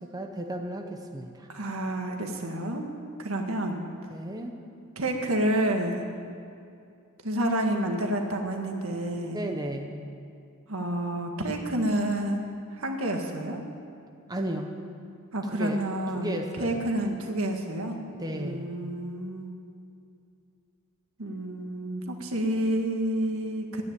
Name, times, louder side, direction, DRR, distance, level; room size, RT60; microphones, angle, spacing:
voice 1, 0.0-1.5 4.1-4.5 9.3-10.1 14.3-14.7 15.5-15.8 16.2-16.8 18.2-18.8, right 1 dB, 20° right, 3 dB, 0.9 m, -34 dB
voice 2, 1.5-2.9 3.2-3.8 5.0-6.0 7.2-9.4 10.7-12.4 12.7-13.6 15.3-18.0 18.3-19.5 21.2-23.8, right 1 dB, 75° right, 3 dB, 1.8 m, -29 dB
12.5 x 9.8 x 10.0 m, 2.5 s
head